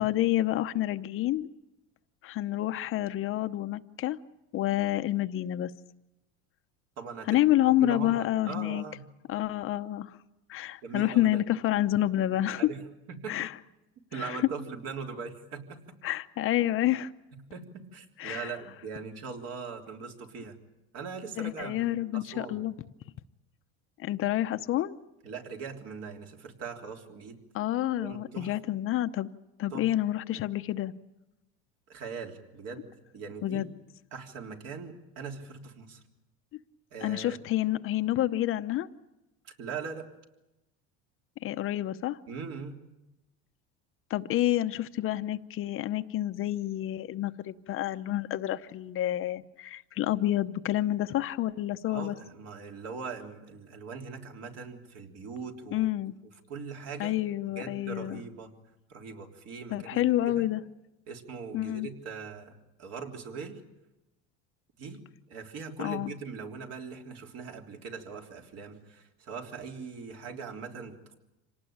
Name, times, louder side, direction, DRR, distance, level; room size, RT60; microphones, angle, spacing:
voice 1, 0.0-1.5 2.2-4.2 4.5-5.7 7.3-8.8 9.3-10.2 10.5-12.6 13.3-13.5 14.1-14.4 16.0-17.1 18.2-18.5 21.4-22.7 24.0-25.0 27.5-29.3 29.6-30.9 33.4-33.7 37.0-38.9 41.4-42.2 44.1-52.2 55.7-56.1 57.0-58.2 59.7-60.6 61.5-61.9 65.8-66.1, left 14 dB, 40° left, 10 dB, 0.8 m, -28 dB
voice 2, 7.0-7.4 7.8-9.0 10.8-11.4 12.6-12.8 13.1-13.5 14.1-16.0 17.5-17.7 17.9-20.6 20.9-22.6 25.2-27.4 28.0-28.5 29.7-29.9 31.9-32.9 33.1-33.7 34.1-36.0 36.9-37.4 39.4-40.1 42.3-42.8 51.9-55.9 56.5-57.2 57.5-58.5 58.9-60.5 61.1-63.6 64.8-65.0 65.3-71.2, right 5 dB, 50° right, 2 dB, 3.5 m, -41 dB
26.5 x 18.5 x 8.8 m, 0.96 s
supercardioid pair, 135°, 32 cm